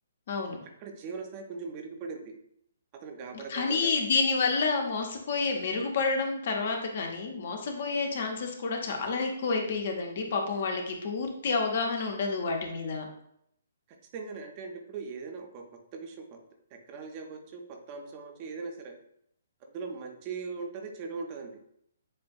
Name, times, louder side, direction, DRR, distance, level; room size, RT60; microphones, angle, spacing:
voice 1, 0.3-0.6 3.3-13.1, left 4 dB, 50° left, 3 dB, 0.8 m, -29 dB
voice 2, 0.8-2.3 3.0-4.0 14.1-15.6 15.9-16.4 16.9-18.9 19.6-21.6, right 4 dB, 30° right, 3 dB, 0.6 m, -40 dB
7.4 x 2.5 x 2.3 m, 0.72 s
figure-of-eight pair, 130°, 0 cm